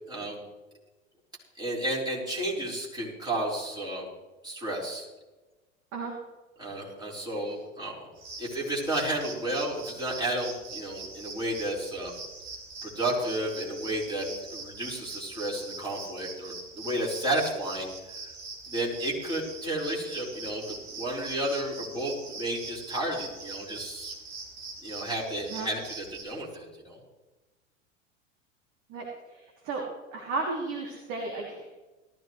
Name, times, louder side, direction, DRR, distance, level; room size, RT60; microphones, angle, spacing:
voice 1, 0.1-0.4 1.6-4.1 4.4-5.1 6.6-7.9 8.4-12.1 12.8-17.9 18.7-24.1 24.8-27.0, right 1 dB, 10° right, -4 dB, 5.2 m, -32 dB
sound 1, 8.1-26.2, right 3 dB, 55° right, 4.7 m, -43 dB
voice 2, 29.3-29.8 30.1-31.7, right 3 dB, 40° right, -1 dB, 3.0 m, -34 dB
19.0 x 14.5 x 3.3 m, 1.2 s
figure-of-eight pair, 90°, 37 cm